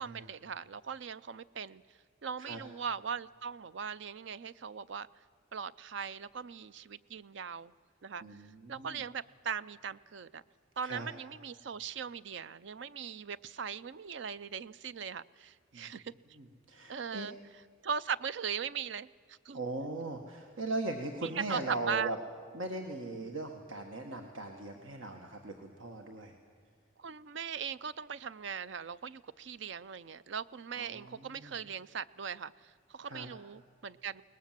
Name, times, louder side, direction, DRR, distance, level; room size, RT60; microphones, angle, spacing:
voice 1, 0.0-1.8 2.2-5.1 5.5-7.7 8.0-8.4 8.7-10.4 10.8-16.1 16.9-17.4 17.8-19.6 21.2-22.1 23.1-23.3 27.0-34.2, right 6 dB, 65° right, 17 dB, 0.5 m, -39 dB
voice 2, 8.2-9.0 10.8-11.1 15.7-15.9 16.4-17.3 19.5-22.2 22.5-26.3 30.7-31.5 33.0-33.3, right 2 dB, 80° right, 3 dB, 1.6 m, -39 dB
22.0 x 19.5 x 7.5 m, 2.2 s
head